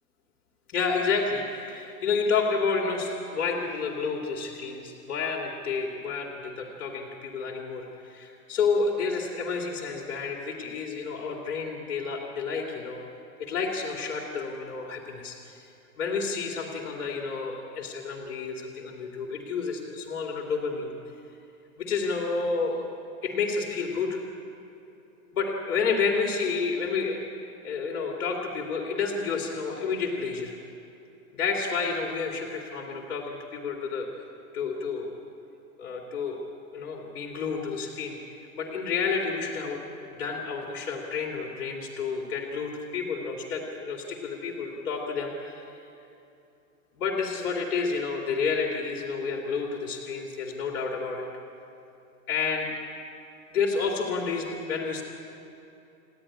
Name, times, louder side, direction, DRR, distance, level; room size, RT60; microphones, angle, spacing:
voice 1, 0.7-13.0 13.4-15.6 16.0-21.0 21.8-22.9 23.2-24.2 25.3-27.2 27.6-30.5 31.4-34.1 34.5-35.1 35.8-36.4 36.7-45.6 47.0-51.3 52.3-52.7 53.5-55.0, left 5 dB, 90° left, 1 dB, 2.7 m, -30 dB
29.0 x 9.8 x 10.0 m, 2.8 s
hypercardioid pair, 135°, 43 cm